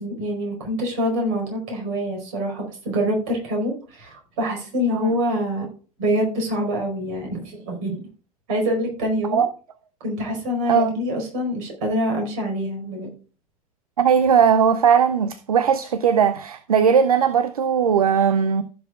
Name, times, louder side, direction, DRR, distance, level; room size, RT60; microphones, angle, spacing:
voice 1, 0.0-5.7 6.0-8.0 8.5-9.4 10.0-13.1, equal, 60° right, 4.7 m, -25 dB
voice 2, 14.0-18.6, right 7 dB, 80° right, 0.5 m, -18 dB
15.5 x 7.0 x 2.4 m
figure-of-eight pair, 75°, 19 cm